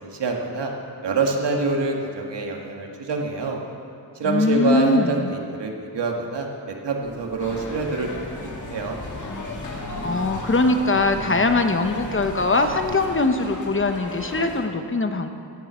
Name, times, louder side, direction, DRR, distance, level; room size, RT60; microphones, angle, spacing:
voice 1, 0.0-0.7 1.0-3.6 4.2-9.0, right 3 dB, 80° right, 1 dB, 1.9 m, -26 dB
voice 2, 4.2-5.3 10.0-15.3, left 2 dB, 30° left, 6 dB, 0.9 m, -21 dB
sound 1, 7.0-13.1, left 2 dB, 80° left, 2.5 m, -37 dB
sound 2, 7.4-14.7, left 2 dB, 45° left, 1.9 m, -36 dB
16.0 x 7.5 x 8.1 m, 2.5 s
wide cardioid pair, 90°, 41 cm